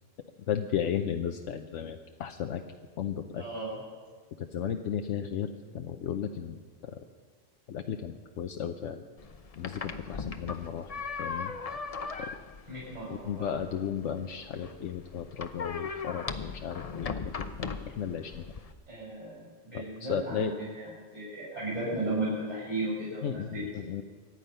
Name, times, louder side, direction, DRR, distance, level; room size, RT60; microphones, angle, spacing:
voice 1, 0.5-2.6 3.0-3.4 4.4-5.5 5.7-7.0 7.7-9.0 9.6-10.9 11.2-11.5 12.2-12.3 13.2-17.3 17.6-18.5 19.7-20.5 23.2-24.0, left 8 dB, 75° left, 6 dB, 1.1 m, -34 dB
voice 2, 3.4-3.8 12.7-13.5 18.9-19.4 19.6-23.6, right 2 dB, 35° right, -6 dB, 6.2 m, -35 dB
sound 1, 9.2-18.7, left 5 dB, 35° left, 0.7 m, -39 dB
24.0 x 10.0 x 5.6 m, 1.5 s
omnidirectional pair, 1.3 m